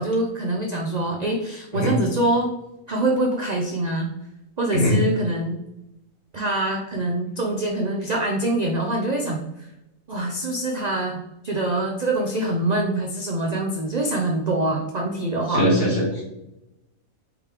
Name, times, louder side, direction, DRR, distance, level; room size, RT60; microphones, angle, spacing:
voice 1, 0.0-2.5 2.9-4.1 4.6-5.6 6.3-9.7 10.1-15.7, right 1 dB, 55° right, 0 dB, 0.4 m, -24 dB
voice 2, 15.5-16.2, equal, 60° left, -5 dB, 1.9 m, -20 dB
5.1 x 3.2 x 3.3 m, 0.89 s
omnidirectional pair, 1.5 m